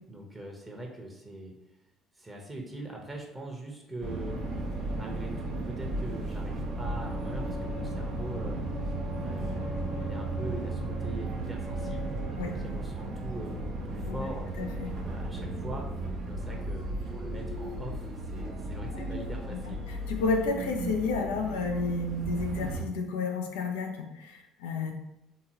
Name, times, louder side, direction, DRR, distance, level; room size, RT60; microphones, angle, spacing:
voice 1, 0.1-1.5 2.2-4.4 5.0-8.6 8.8-14.7 15.0-15.9 16.2-19.8, right 1 dB, 20° right, 0 dB, 0.9 m, -42 dB
sound 1, 4.0-22.8, right 1 dB, 60° right, 0.7 m, -35 dB
voice 2, 14.6-14.9 18.9-19.1 19.5-24.9, left 3 dB, 80° left, 3 dB, 0.5 m, -31 dB
3.6 x 2.9 x 2.8 m, 0.89 s
hypercardioid pair, 60°, 0 cm